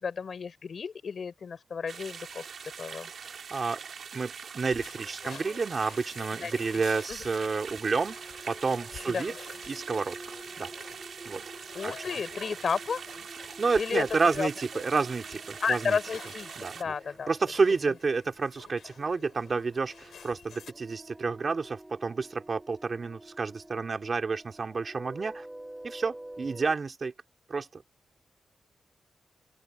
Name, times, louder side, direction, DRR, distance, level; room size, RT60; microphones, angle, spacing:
voice 1, 0.0-2.4 2.8-3.1 6.4-6.5 7.1-7.2 9.1-9.3 11.7-13.0 13.8-14.0 14.3-14.5 15.6-16.5 16.7-17.3, left 6 dB, 55° left, 4.4 m, -32 dB
sound 1, 1.9-16.8, right 6 dB, 65° right, 4.0 m, -43 dB
voice 2, 3.5-3.8 4.1-9.3 9.7-10.2 10.6-10.7 11.2-11.4 11.8-12.2 13.4-16.0 16.6-16.9 17.3-25.5 25.8-27.1 27.5-27.8, right 4 dB, 40° right, 3.1 m, -30 dB
sound 2, 4.7-20.7, left 7 dB, 75° left, 6.7 m, -51 dB
sound 3, 7.5-26.8, right 1 dB, 10° right, 7.4 m, -49 dB
open air
wide cardioid pair, 110°, 0 cm